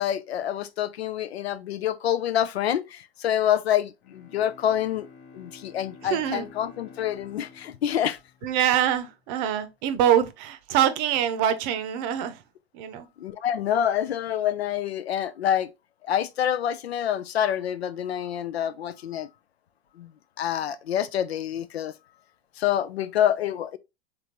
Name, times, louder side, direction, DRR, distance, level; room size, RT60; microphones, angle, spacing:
voice 1, 0.0-5.1 5.3-8.2 13.2-15.7 16.0-19.3 20.0-20.1 20.4-21.9 22.6-23.8, left 10 dB, 85° left, 0.5 m, -27 dB
Bowed string instrument, 4.0-9.0, left 5 dB, 35° left, 0.8 m, -50 dB
voice 2, 6.0-6.5 8.4-12.4 12.7-13.1, right 10 dB, 45° right, 0.7 m, -24 dB
3.7 x 3.3 x 2.9 m
hypercardioid pair, 105°, 31 cm